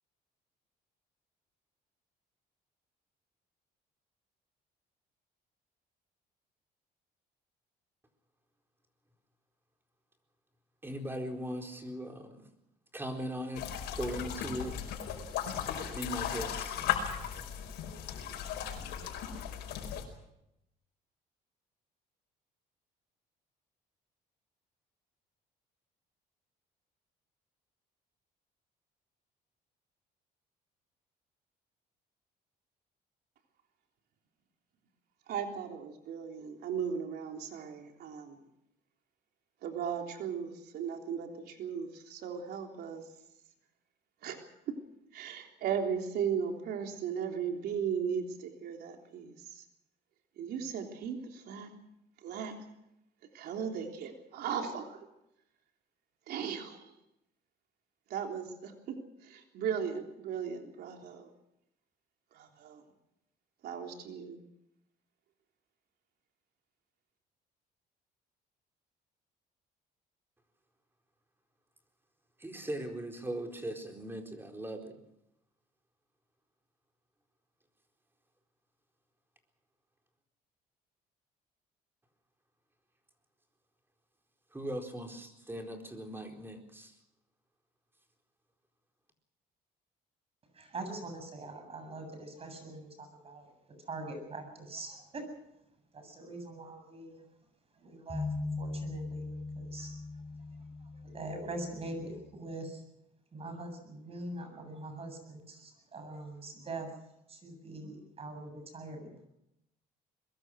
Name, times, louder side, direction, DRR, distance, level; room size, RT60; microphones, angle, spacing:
voice 1, 10.8-12.5 12.9-13.7 13.9-14.8 15.9-16.8 72.4-75.0 84.5-86.9, right 1 dB, 15° right, 3 dB, 4.4 m, -39 dB
sound 1, 13.5-20.0, left 9 dB, 80° left, 5.1 m, -36 dB
voice 2, 35.3-38.4 39.6-43.0 44.2-44.4 45.1-49.6 50.4-51.7 52.2-52.5 53.3-55.1 56.3-56.9 58.1-61.3 62.3-62.8 63.6-64.4, right 7 dB, 70° right, 3 dB, 3.5 m, -37 dB
voice 3, 90.5-93.5 93.9-95.2 95.9-97.3 97.7-99.9 100.6-102.8 103.3-106.9 107.3-109.2, right 2 dB, 35° right, 6 dB, 7.8 m, -43 dB
sound 2, 98.1-102.4, left 3 dB, 15° left, 4.3 m, -40 dB
23.0 x 22.0 x 6.3 m, 0.83 s
cardioid pair, 110°, 17 cm